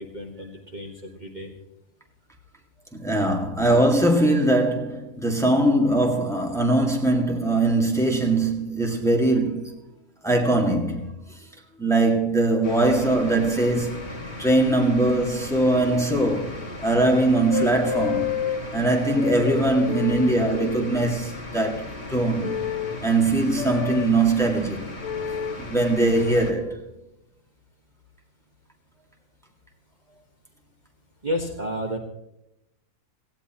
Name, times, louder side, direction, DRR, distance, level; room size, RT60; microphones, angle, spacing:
voice 1, 0.0-1.5 31.2-32.0, equal, 30° right, 1.6 m, -31 dB
voice 2, 2.9-9.7 10.2-11.1 11.8-14.1 14.4-18.3 18.7-22.6 23.0-24.9 25.6-26.9, right 2 dB, ahead, 1.9 m, -21 dB
sound 1, 12.6-26.5, left 2 dB, 45° left, 2.3 m, -37 dB
sound 2, 17.5-18.6 19.1-20.9 22.4-23.0 23.6-24.1 25.0-25.6 26.5-26.8, left 9 dB, 65° left, 1.4 m, -29 dB
18.0 x 16.5 x 3.0 m
omnidirectional pair, 1.6 m